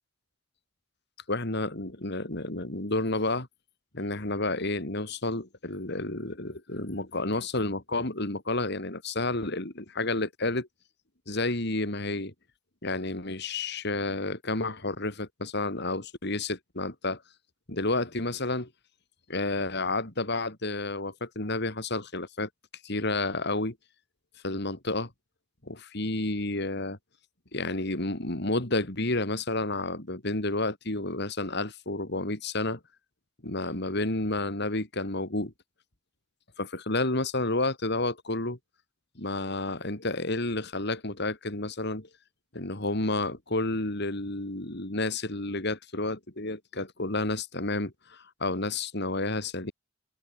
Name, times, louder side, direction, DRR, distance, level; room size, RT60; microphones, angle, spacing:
voice 1, 1.3-3.5 3.9-10.7 11.3-12.3 12.8-17.2 17.7-18.7 19.3-22.5 22.8-23.8 24.4-25.1 25.6-27.0 27.5-32.8 33.4-35.5 36.6-38.6 39.2-42.1 42.5-49.7, left 2 dB, 60° left, 4.1 m, -30 dB
head